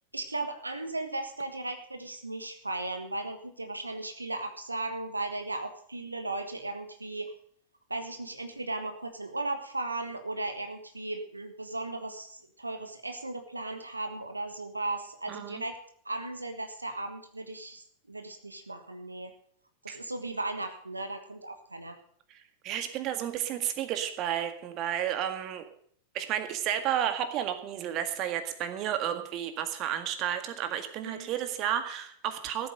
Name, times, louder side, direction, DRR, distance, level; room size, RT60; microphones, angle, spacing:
voice 1, 0.1-7.3 7.9-19.3 19.8-21.9 31.0-31.3, right 2 dB, 90° right, 6 dB, 1.5 m, -36 dB
voice 2, 15.3-15.6 19.9-20.0 22.3-22.4 22.6-25.6 26.1-32.7, right 10 dB, 40° right, 8 dB, 1.8 m, -32 dB
15.0 x 8.6 x 6.6 m, 0.62 s
figure-of-eight pair, 90°, 0 cm